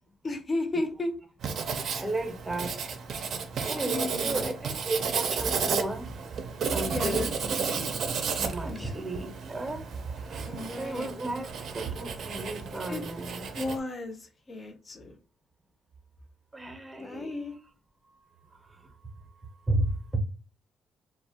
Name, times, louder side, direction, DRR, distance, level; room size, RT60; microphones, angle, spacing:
voice 1, 0.2-1.1 3.8-4.5 6.9-7.9 8.6-8.9 10.4-11.1 12.9-13.0 13.5-15.2 17.0-17.5, left 2 dB, 35° left, 0.5 m, -34 dB
Writing, 1.4-13.8, right 6 dB, 65° right, 0.4 m, -33 dB
voice 2, 1.8-2.8 3.6-6.1 6.7-7.3 8.4-9.9 10.2-10.5 10.7-11.5 11.7-13.5 16.5-17.6 18.7-18.9 19.7-20.2, right 2 dB, 20° right, 0.6 m, -33 dB
2.4 x 2.0 x 2.7 m
cardioid pair, 90°, 0 cm